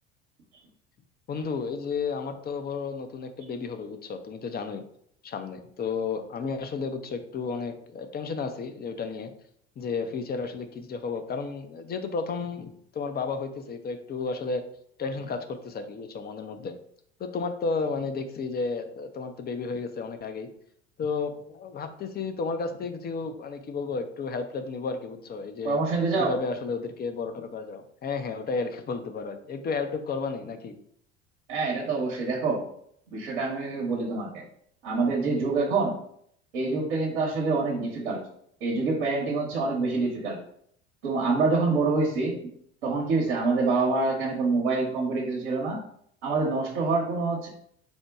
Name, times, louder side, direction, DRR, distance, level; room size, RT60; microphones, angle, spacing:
voice 1, 1.3-4.8 5.2-9.3 9.8-14.6 15.0-16.7 17.2-20.5 21.0-25.8 26.2-30.7, left 4 dB, 30° left, 8 dB, 0.6 m, -32 dB
voice 2, 25.6-26.3 31.5-32.6 33.1-34.4 34.8-35.9 36.5-38.2 38.6-40.4 41.0-42.3 42.8-45.8 46.2-47.5, right 3 dB, 75° right, -4 dB, 1.1 m, -26 dB
4.4 x 2.2 x 4.6 m, 0.67 s
hypercardioid pair, 70°, 34 cm